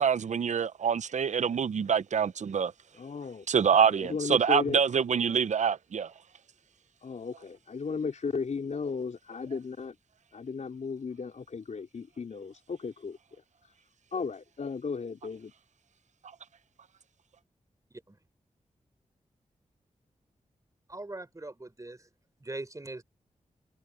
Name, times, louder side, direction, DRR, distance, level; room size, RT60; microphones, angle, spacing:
voice 1, 0.0-2.7 3.5-6.1, right 7 dB, 65° right, 0.7 m, -26 dB
voice 2, 2.9-3.5 3.8-4.8 7.0-10.0 10.3-13.2 14.1-15.5, left 5 dB, 65° left, 4.1 m, -35 dB
voice 3, 20.9-22.1 22.4-23.0, right 2 dB, 25° right, 4.0 m, -41 dB
cardioid pair, 50°, 13 cm